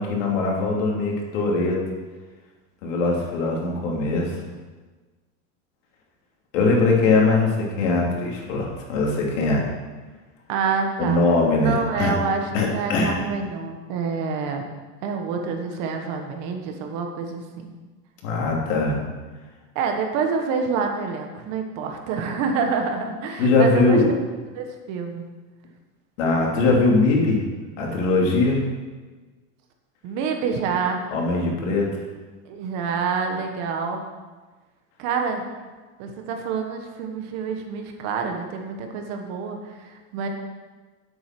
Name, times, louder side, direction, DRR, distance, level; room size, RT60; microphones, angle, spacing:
voice 1, 0.0-1.8 2.8-4.3 6.5-9.6 11.0-12.1 12.5-13.1 18.2-19.0 23.4-24.1 26.2-27.4 27.8-28.6 31.1-31.9, left 3 dB, 65° left, -1 dB, 3.0 m, -21 dB
voice 2, 10.5-11.2 11.6-14.6 15.0-17.7 19.7-24.0 24.5-25.3 30.0-31.0 32.4-34.0 35.0-35.4 36.0-40.3, right 5 dB, 40° right, 4 dB, 1.4 m, -27 dB
9.7 x 8.1 x 6.0 m, 1.3 s
supercardioid pair, 170°, 40 cm